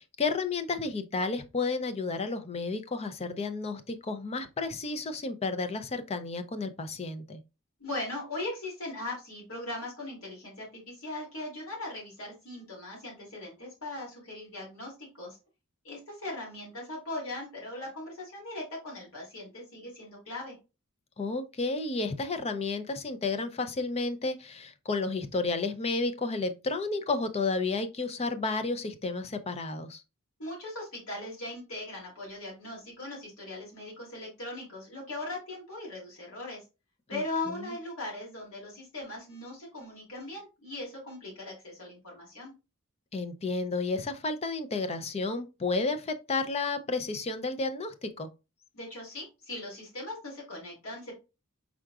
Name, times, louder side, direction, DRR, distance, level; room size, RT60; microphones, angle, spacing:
voice 1, 0.0-7.4 21.2-30.0 37.1-37.7 43.1-48.3, left 3 dB, 30° left, 0.4 m, -32 dB
voice 2, 7.8-15.4 15.8-20.6 30.4-36.6 37.1-42.5 48.7-51.1, left 2 dB, 85° left, 2.6 m, -39 dB
4.7 x 3.7 x 2.3 m
head